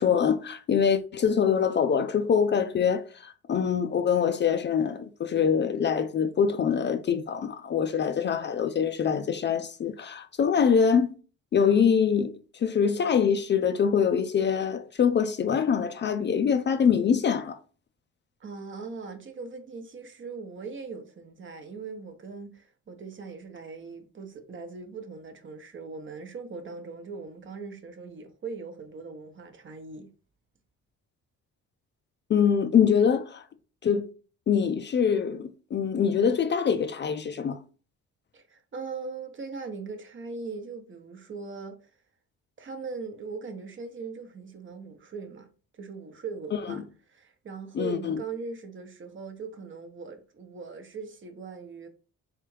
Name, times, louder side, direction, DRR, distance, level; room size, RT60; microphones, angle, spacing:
voice 1, 0.0-11.1 11.5-17.6 32.3-33.4 33.8-34.1 34.5-37.6 47.7-48.2, left 7 dB, 40° left, 0.4 m, -24 dB
voice 2, 18.4-30.1 38.3-41.9 42.6-45.5 45.7-51.9, right 4 dB, 40° right, 0.8 m, -40 dB
3.5 x 3.3 x 3.2 m
cardioid pair, 90°, 30 cm